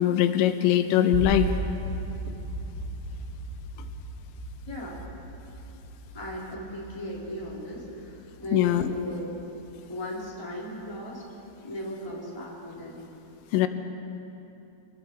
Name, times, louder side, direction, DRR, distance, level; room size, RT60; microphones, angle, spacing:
voice 1, 0.0-1.5 8.5-8.9 13.5-13.7, left 12 dB, 90° left, 8 dB, 3.5 m, -21 dB
sound 1, 1.1-11.1, right 3 dB, 80° right, 5.4 m, -37 dB
voice 2, 4.6-5.0 6.1-9.4 9.9-11.2 11.6-13.1, equal, 5° left, -6 dB, 3.4 m, -37 dB
27.5 x 21.0 x 4.9 m, 3.0 s
omnidirectional pair, 5.7 m